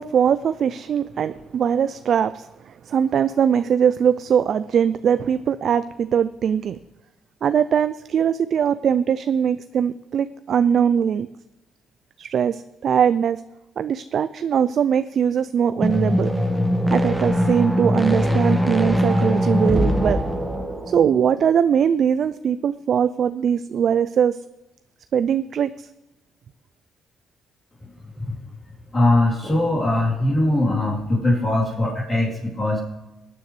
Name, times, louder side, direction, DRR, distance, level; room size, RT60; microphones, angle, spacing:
voice 1, 0.0-6.8 7.4-11.3 12.2-13.4 13.8-16.3 16.9-20.2 20.9-24.4 25.1-25.7, right 8 dB, 60° right, 12 dB, 0.4 m, -21 dB
sound 1, 15.7-21.4, equal, ahead, 1.3 m, -21 dB
voice 2, 28.9-32.8, left 1 dB, 30° left, -7 dB, 3.4 m, -21 dB
18.5 x 9.5 x 3.3 m, 1.0 s
cardioid pair, 90°, 0 cm